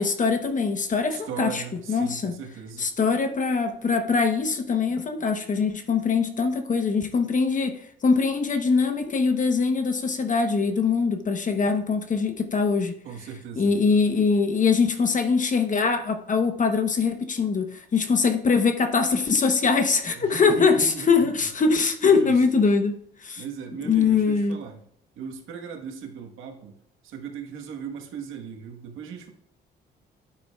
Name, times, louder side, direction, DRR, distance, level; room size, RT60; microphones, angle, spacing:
voice 1, 0.0-1.6 1.9-2.3 2.8-12.9 13.6-22.9 23.2-23.4 23.8-24.6, left 5 dB, 40° left, 6 dB, 0.9 m, -22 dB
voice 2, 1.1-2.9 13.0-13.7 20.1-21.3 22.0-22.6 23.4-24.8 25.2-26.8 27.0-29.3, right 6 dB, 85° right, 3 dB, 1.3 m, -37 dB
11.5 x 9.2 x 2.3 m, 0.70 s
cardioid pair, 90°, 20 cm